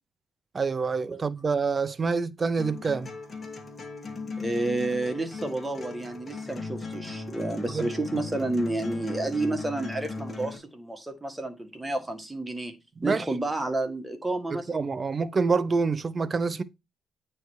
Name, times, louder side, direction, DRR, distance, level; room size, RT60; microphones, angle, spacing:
voice 1, 0.5-3.1 7.7-7.9 13.0-13.2 14.5-16.6, right 4 dB, 35° right, 0.6 m, -27 dB
sound 1, 2.6-10.6, left 3 dB, 30° left, 2.1 m, -37 dB
voice 2, 4.4-12.8 13.0-14.7, right 2 dB, 15° right, 1.6 m, -30 dB
9.1 x 3.3 x 4.7 m
cardioid pair, 90°, 0 cm